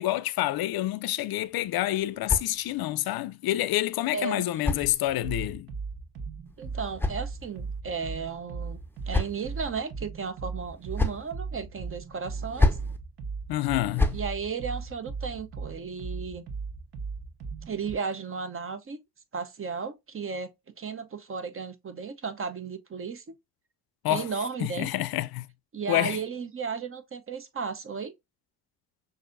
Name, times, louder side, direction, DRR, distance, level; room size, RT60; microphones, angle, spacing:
voice 1, 0.0-5.7 13.5-14.2 24.0-24.3 24.6-25.5 25.9-26.2, left 15 dB, 55° left, 0.6 m, -28 dB
sound 1, 1.4-3.0 4.0-5.5 6.5-7.8 8.6-9.7 10.6-11.3 12.3-13.0 13.7-14.3, left 2 dB, 5° left, 0.6 m, -30 dB
voice 2, 4.1-4.4 6.6-8.8 9.1-12.8 14.1-16.4 17.7-19.0 19.3-20.5 20.8-23.2 24.1-24.9 25.7-28.1, right 5 dB, 30° right, 0.7 m, -34 dB
sound 2, 5.1-17.9, right 4 dB, 55° right, 1.1 m, -38 dB
6.1 x 2.7 x 2.5 m
hypercardioid pair, 55°, 44 cm